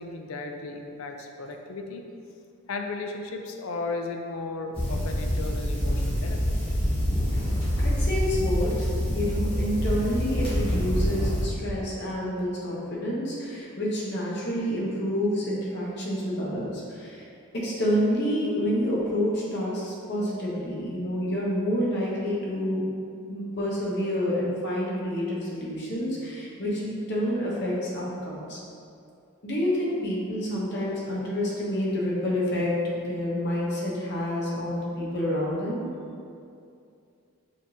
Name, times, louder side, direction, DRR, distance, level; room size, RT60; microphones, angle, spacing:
voice 1, 0.0-2.0 2.7-6.4, left 3 dB, 70° left, 4 dB, 0.4 m, -35 dB
sound 1, 4.7-11.4, equal, 25° left, 1.4 m, -26 dB
voice 2, 7.8-8.9 9.1-17.3 17.5-22.8 23.3-28.6 29.4-35.8, equal, 50° left, -5 dB, 0.9 m, -28 dB
5.0 x 3.6 x 2.7 m, 2.5 s
head